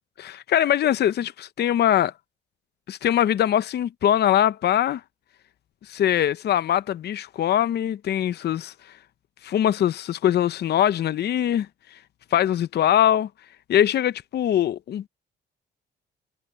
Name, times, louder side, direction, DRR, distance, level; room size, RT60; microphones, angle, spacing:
voice 1, 0.2-2.1 2.9-5.0 5.9-8.7 9.4-11.7 12.3-13.3 13.7-15.1, left 11 dB, 55° left, 0.6 m, -22 dB
cardioid pair, 90°, 20 cm